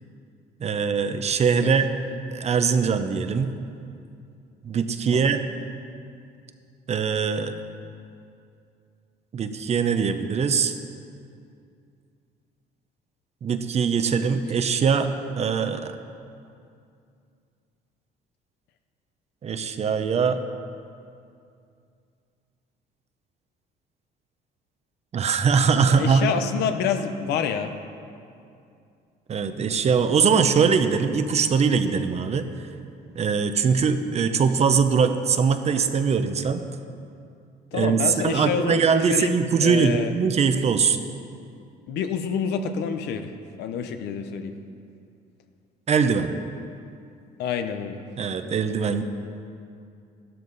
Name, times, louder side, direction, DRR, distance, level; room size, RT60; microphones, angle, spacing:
voice 1, 0.6-1.9 2.3-3.5 4.6-5.4 6.9-7.5 9.3-10.8 13.4-15.1 15.4-15.9 19.4-20.4 25.1-26.3 29.3-32.5 33.2-36.6 37.7-38.0 38.2-41.0 45.9-46.3 48.2-49.0, right 6 dB, 40° right, 9 dB, 0.8 m, -22 dB
voice 2, 25.9-27.7 37.7-40.1 41.9-44.5 47.4-48.0, left 7 dB, 80° left, 7 dB, 0.9 m, -28 dB
13.5 x 12.5 x 4.1 m, 2.5 s
cardioid pair, 110°, 17 cm